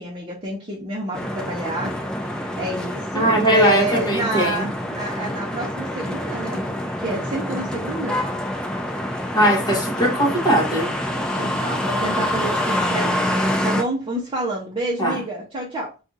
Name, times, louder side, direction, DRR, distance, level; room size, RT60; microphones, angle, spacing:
voice 1, 0.0-8.2 11.1-15.9, right 2 dB, 25° right, 0.8 m, -29 dB
sound 1, 1.1-13.8, left 1 dB, 5° left, 0.3 m, -26 dB
voice 2, 3.1-4.7 9.3-10.9 15.0-15.2, equal, 20° left, 1.0 m, -19 dB
2.6 x 2.4 x 3.9 m
head